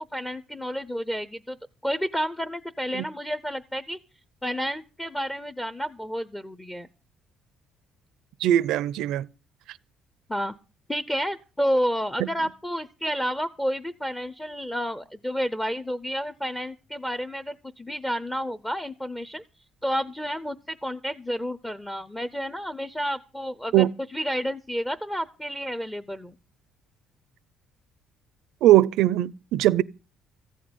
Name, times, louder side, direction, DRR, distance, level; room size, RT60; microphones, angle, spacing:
voice 1, 0.0-1.6 1.8-4.0 4.4-6.9 10.3-10.5 10.9-19.4 19.8-26.3, equal, 10° left, 0.6 m, -30 dB
voice 2, 8.4-9.3 23.7-23.9 28.6-29.8, right 14 dB, 75° right, 0.6 m, -20 dB
15.0 x 6.4 x 9.5 m
cardioid pair, 160°, 0 cm